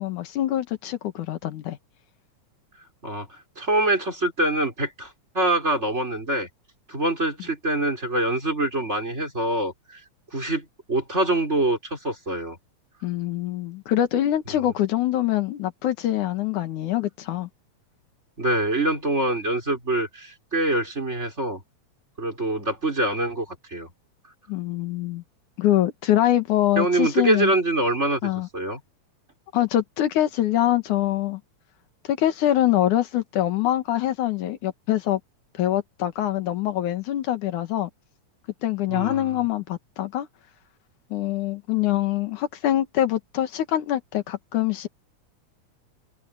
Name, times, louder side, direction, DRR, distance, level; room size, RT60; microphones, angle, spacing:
voice 1, 0.0-1.8 13.0-17.5 24.5-25.2 25.6-27.5 28.2-28.5 29.5-31.4 32.1-35.2 35.6-37.9 38.6-40.3 41.1-44.9, left 13 dB, 80° left, 2.9 m, -24 dB
voice 2, 3.0-6.5 6.9-10.0 10.3-12.6 18.4-21.6 22.2-23.9 26.8-28.8 38.9-39.4, right 2 dB, 20° right, 5.0 m, -25 dB
omnidirectional pair, 3.4 m